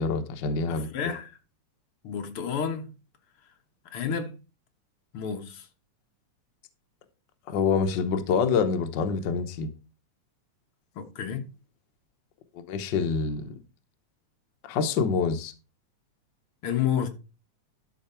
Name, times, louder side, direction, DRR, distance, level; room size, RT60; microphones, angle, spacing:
voice 1, 0.0-0.9 7.5-9.7 12.7-13.5 14.6-15.5, left 5 dB, 80° left, 1.0 m, -26 dB
voice 2, 0.7-1.3 2.0-2.9 3.9-4.3 5.1-5.7 11.0-11.4 16.6-17.1, left 8 dB, 60° left, 1.8 m, -30 dB
12.5 x 5.1 x 4.3 m
omnidirectional pair, 3.4 m